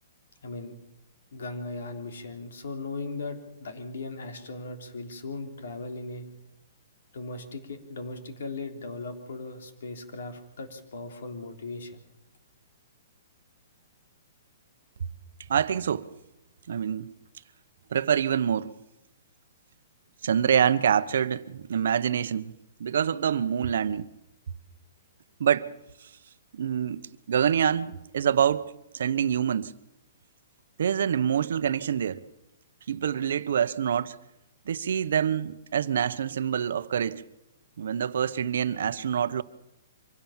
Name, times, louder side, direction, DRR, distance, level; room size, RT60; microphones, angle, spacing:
voice 1, 0.4-0.7 1.3-6.2 7.1-12.0, left 3 dB, 65° left, 3.5 m, -38 dB
voice 2, 15.5-16.1 16.7-17.1 17.9-18.7 20.2-22.5 22.8-24.1 25.4-25.7 26.5-27.0 27.3-28.7 28.9-29.7 30.8-32.2 32.9-34.1 34.7-37.2 37.8-39.4, right 8 dB, 60° right, 0.9 m, -26 dB
25.0 x 16.5 x 7.3 m
hypercardioid pair, 175°, 0 cm